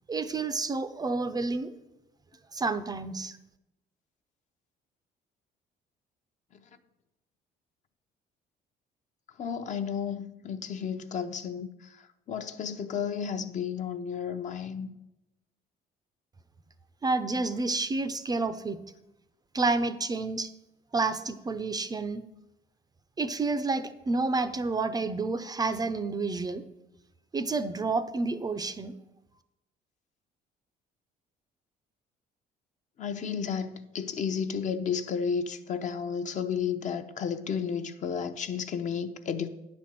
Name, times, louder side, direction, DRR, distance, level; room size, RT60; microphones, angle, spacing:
voice 1, 0.1-1.8 2.5-3.4 17.0-18.8 19.5-20.5 20.9-22.2 23.2-26.6 27.3-29.0, right 3 dB, 25° right, 0.5 m, -29 dB
voice 2, 9.4-14.9 33.0-39.5, left 7 dB, 45° left, 0.7 m, -32 dB
9.5 x 4.3 x 7.5 m
cardioid pair, 110°, 17 cm